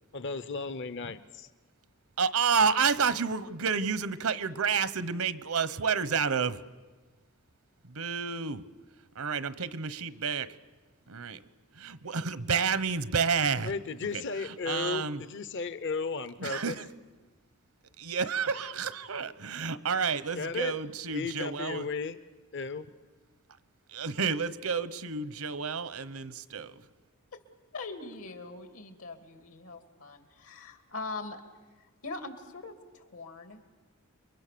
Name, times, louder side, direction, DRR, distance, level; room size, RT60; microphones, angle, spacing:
voice 1, 0.1-1.5 13.6-15.0 15.3-16.8 20.3-20.8 21.1-22.2 22.5-22.9, left 4 dB, 60° left, 0.9 m, -34 dB
voice 2, 2.2-6.6 7.8-8.6 9.1-10.6 11.1-11.4 11.8-13.7 14.1-15.2 16.4-16.9 18.0-21.9 23.9-26.8, right 5 dB, 85° right, 1.1 m, -30 dB
voice 3, 27.7-31.4 32.0-33.7, left 3 dB, 80° left, 2.8 m, -42 dB
29.5 x 23.5 x 6.9 m
head